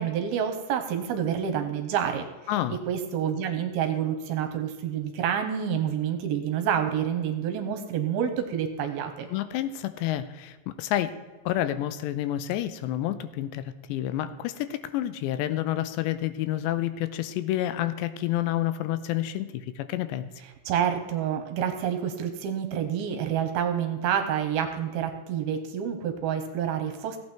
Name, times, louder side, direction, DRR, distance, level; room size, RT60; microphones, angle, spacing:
voice 1, 0.0-2.3 2.9-9.3 20.7-27.2, right 8 dB, 70° right, 6 dB, 2.6 m, -28 dB
voice 2, 9.3-11.2 11.5-20.3, left 13 dB, 85° left, 12 dB, 2.9 m, -29 dB
16.0 x 8.9 x 4.4 m, 1.3 s
omnidirectional pair, 5.1 m